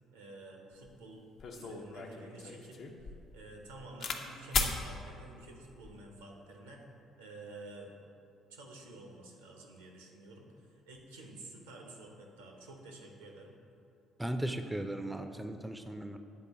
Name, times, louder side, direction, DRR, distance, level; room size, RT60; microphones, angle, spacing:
voice 1, 0.1-1.2 1.5-6.9 7.2-7.9 8.5-13.6, right 2 dB, 90° right, 1 dB, 0.8 m, -50 dB
sound 1, 0.9-1.0 1.4-4.2 4.5-4.8 5.6-6.0, left 5 dB, 55° left, 0.6 m, -36 dB
voice 2, 14.2-16.2, right 1 dB, 10° right, 7 dB, 0.4 m, -37 dB
8.5 x 3.8 x 3.6 m, 2.7 s
hypercardioid pair, 55°, 0 cm